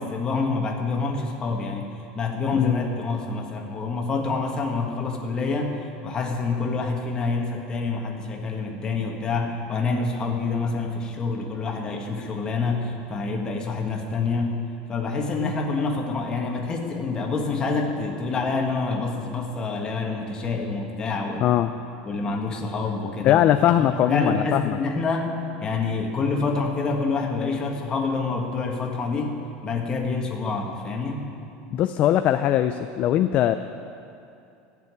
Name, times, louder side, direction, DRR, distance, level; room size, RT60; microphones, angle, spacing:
voice 1, 0.0-1.8 2.1-5.7 6.0-14.6 14.9-21.5 22.0-23.4 23.8-25.3 25.6-29.3 29.6-31.2, left 4 dB, 20° left, 1 dB, 1.6 m, -27 dB
voice 2, 21.4-21.7 23.2-24.8 31.7-33.6, left 11 dB, 35° left, 9 dB, 0.4 m, -20 dB
15.0 x 7.0 x 9.5 m, 2.6 s
cardioid pair, 165°, 4 cm